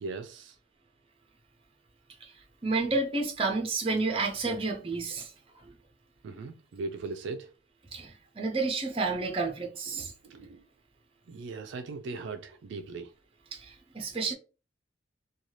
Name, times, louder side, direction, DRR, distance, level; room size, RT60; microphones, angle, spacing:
voice 1, 0.0-0.5 6.2-7.5 9.9-10.6 11.3-13.1, right 3 dB, 70° right, 0.3 m, -39 dB
voice 2, 2.6-5.3 7.9-10.1 13.5-14.3, right 3 dB, 30° right, 0.6 m, -30 dB
2.6 x 2.3 x 3.1 m
head